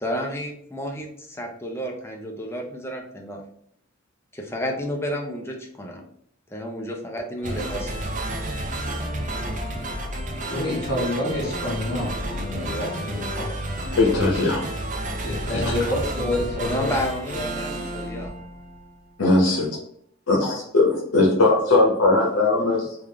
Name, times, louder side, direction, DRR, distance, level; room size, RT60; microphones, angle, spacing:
voice 1, 0.0-3.4 4.3-6.0 6.5-8.2 16.6-18.3, equal, 10° left, 1 dB, 0.5 m, -31 dB
sound 1, 7.4-19.0, right 1 dB, 35° right, 0.5 m, -31 dB
voice 2, 10.5-13.5 13.9-14.2 15.2-16.9, left 1 dB, 70° left, -3 dB, 1.4 m, -28 dB
voice 3, 14.0-14.7 19.2-19.6 20.3-23.0, left 2 dB, 90° left, -3 dB, 0.8 m, -19 dB
3.5 x 2.4 x 3.3 m, 0.68 s
head